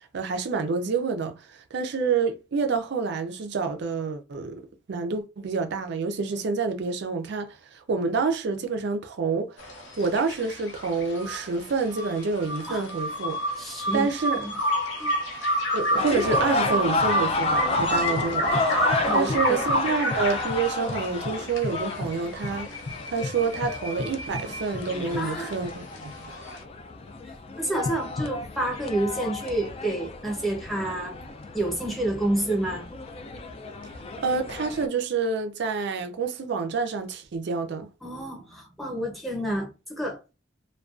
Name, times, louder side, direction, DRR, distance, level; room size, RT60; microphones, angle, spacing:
voice 1, 0.1-4.6 4.9-9.6 10.0-13.4 13.9-14.4 15.7-18.6 19.1-22.7 23.1-25.8 26.2-26.3 34.2-37.9, right 4 dB, 65° right, 0.4 m, -28 dB
sound 1, 9.6-26.6, equal, 85° left, 0.7 m, -30 dB
voice 2, 13.6-14.5 15.0-15.1 17.9-18.3 19.0-19.6 25.2-25.5 27.2-31.2 31.5-32.9 38.0-40.2, right 1 dB, ahead, 0.7 m, -29 dB
sound 2, 16.0-34.9, left 3 dB, 30° left, 0.3 m, -32 dB
2.3 x 2.2 x 2.4 m
head